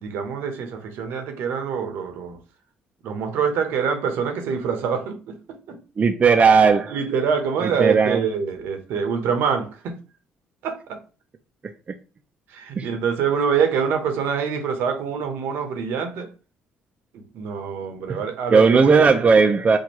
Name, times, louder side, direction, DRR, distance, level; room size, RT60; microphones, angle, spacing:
voice 1, 0.0-2.4 3.0-5.8 6.9-10.0 10.6-11.0 12.5-16.3 17.1-19.2, right 6 dB, 75° right, 0.8 m, -25 dB
voice 2, 6.0-7.0 7.6-8.2 12.8-12.9 18.1-18.2 18.5-19.8, right 5 dB, 35° right, 0.4 m, -16 dB
4.5 x 2.3 x 3.0 m
supercardioid pair, 65°, 4 cm